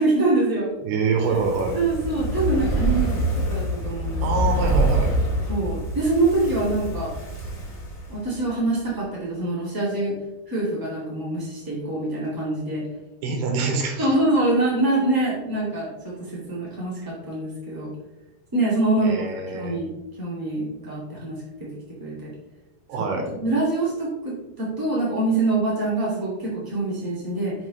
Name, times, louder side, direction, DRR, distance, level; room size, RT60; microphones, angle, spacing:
voice 1, 0.0-0.7 1.7-4.2 5.5-7.1 8.1-10.1 10.5-12.8 13.2-13.3 14.0-17.9 18.5-19.9 20.2-21.7 22.0-22.3 23.0-23.1 23.4-27.5, right 2 dB, 25° right, -7 dB, 0.5 m, -25 dB
voice 2, 0.8-1.8 4.2-5.1 13.2-14.1 19.0-19.8 22.9-23.3, right 4 dB, 75° right, 3 dB, 2.7 m, -25 dB
Fire, 1.1-8.5 8.8-8.9, right 1 dB, 25° left, 2.1 m, -26 dB
7.4 x 5.7 x 3.2 m, 0.99 s
omnidirectional pair, 5.0 m